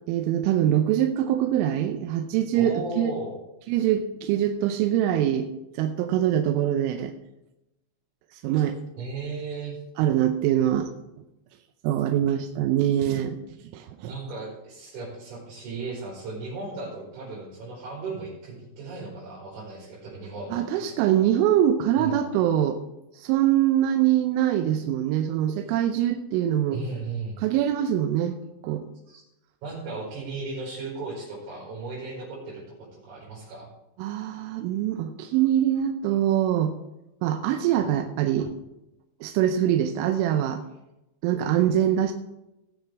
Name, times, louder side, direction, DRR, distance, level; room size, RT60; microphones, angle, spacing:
voice 1, 0.1-3.1 3.7-5.5 5.7-7.1 8.3-8.8 10.0-10.9 11.8-13.4 13.7-14.1 20.5-22.8 23.1-26.8 27.4-28.4 28.6-28.9 34.0-36.7 37.2-38.5 39.2-40.6 41.2-42.1, right 11 dB, 90° right, 5 dB, 3.3 m, -23 dB
voice 2, 2.5-3.4 9.0-9.8 14.0-20.8 22.0-22.2 26.7-27.4 29.1-29.2 29.6-33.7, right 3 dB, 70° right, -7 dB, 6.8 m, -36 dB
18.5 x 6.8 x 4.6 m, 0.93 s
omnidirectional pair, 5.5 m